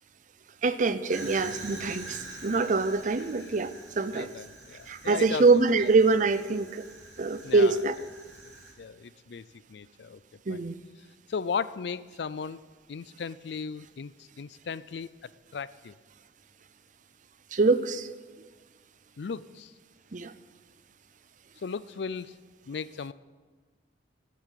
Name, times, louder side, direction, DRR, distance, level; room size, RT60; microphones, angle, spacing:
voice 1, 0.6-4.3 4.9-6.8 7.2-7.9 10.5-10.8 17.5-18.1 20.1-20.3, right 3 dB, 45° right, 13 dB, 0.6 m, -24 dB
Fire, 1.1-8.7, right 2 dB, 85° right, 3.4 m, -46 dB
voice 2, 4.1-5.5 5.8-5.9 7.4-7.8 8.4-10.2 10.5-10.6 11.3-12.6 12.9-15.9 19.2-19.7 21.6-22.4 22.7-23.1, left 5 dB, 70° left, 18 dB, 0.4 m, -36 dB
10.5 x 8.3 x 9.1 m, 1.4 s
head